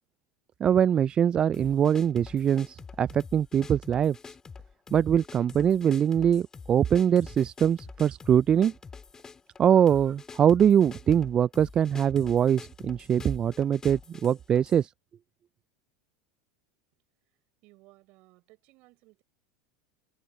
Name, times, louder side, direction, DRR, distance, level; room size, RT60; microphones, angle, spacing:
voice 1, 0.6-4.2 4.9-8.7 9.6-14.9, right 9 dB, 30° right, 0.4 m, -23 dB
sound 1, 1.5-14.8, left 5 dB, 20° left, 2.9 m, -46 dB
voice 2, 17.6-19.2, right 23 dB, 55° right, 6.1 m, -58 dB
hypercardioid pair, 90°, 3 cm